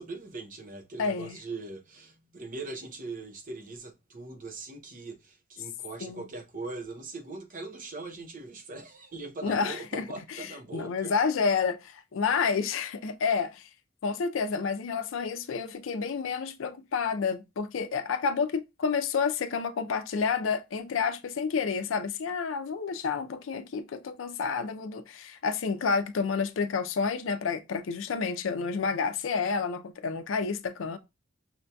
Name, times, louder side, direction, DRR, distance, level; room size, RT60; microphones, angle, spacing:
voice 1, 0.0-11.1, right 3 dB, 45° right, 0.6 m, -41 dB
voice 2, 1.0-1.4 6.0-6.2 9.4-10.5 10.7-13.7 14.0-31.0, left 5 dB, 75° left, 0.4 m, -29 dB
5.7 x 2.7 x 2.2 m
head